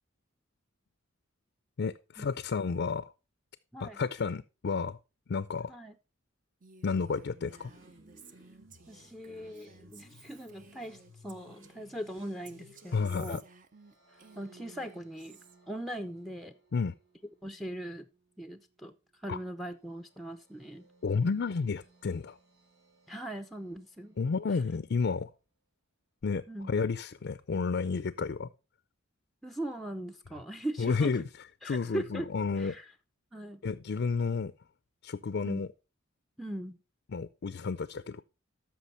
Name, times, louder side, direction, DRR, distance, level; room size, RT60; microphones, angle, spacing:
voice 1, 1.8-3.1 3.8-5.0 5.3-5.7 6.8-7.7 12.9-13.4 16.7-16.9 19.3-19.4 21.0-22.4 24.2-25.3 26.2-28.5 30.8-31.2 31.6-32.7 33.6-34.5 35.0-35.7 37.1-38.2, left 5 dB, 55° left, 0.5 m, -31 dB
Female speech woman speaking, 6.6-12.0 12.4-15.6, right 4 dB, 40° right, 0.8 m, -56 dB
sound 1, 7.6-13.0, left 1 dB, 65° right, 3.1 m, -58 dB
voice 2, 8.9-11.0 11.2-13.4 14.4-15.4 15.7-16.5 17.4-18.1 18.4-18.9 19.2-20.9 23.1-24.2 26.5-26.7 29.4-31.2 31.6-32.3 32.6-32.9 33.3-33.6 35.4-35.6 36.4-36.8, right 1 dB, ahead, 0.5 m, -40 dB
sound 2, 13.7-25.0, right 5 dB, 90° right, 5.2 m, -64 dB
13.5 x 6.0 x 4.3 m
head